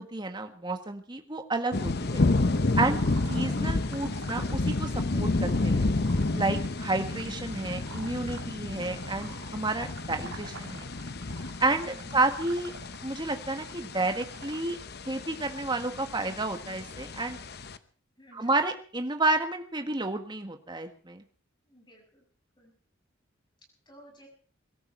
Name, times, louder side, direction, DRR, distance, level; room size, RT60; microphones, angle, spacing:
voice 1, 0.0-2.3 2.8-3.0 3.3-5.9 6.3-10.9 11.6-12.7 13.0-14.8 15.1-17.4 18.3-21.2, right 2 dB, 20° right, 6 dB, 1.6 m, -30 dB
sound 1, 1.7-17.8, left 2 dB, 50° left, 0.9 m, -31 dB
sound 2, 2.1-14.6, right 4 dB, 80° right, 3.1 m, -48 dB
voice 2, 2.9-3.3 11.9-12.3 18.2-18.6 21.7-22.3 22.6-22.7 23.9-24.3, equal, 20° left, 1 dB, 6.9 m, -55 dB
23.0 x 13.0 x 4.6 m, 0.43 s
head